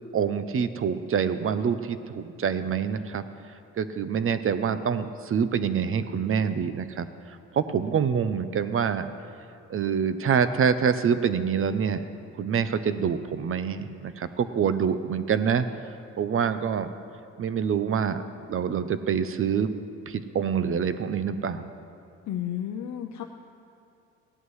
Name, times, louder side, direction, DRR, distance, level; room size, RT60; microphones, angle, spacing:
voice 1, 0.1-3.2 3.8-9.1 9.7-12.0 12.4-15.7 16.2-16.9 17.4-18.2 18.5-19.7 20.1-21.6, right 7 dB, 45° right, 12 dB, 0.6 m, -26 dB
voice 2, 22.3-23.2, left 10 dB, 70° left, 4 dB, 0.6 m, -32 dB
16.5 x 11.0 x 3.2 m, 2.6 s
cardioid pair, 90°, 30 cm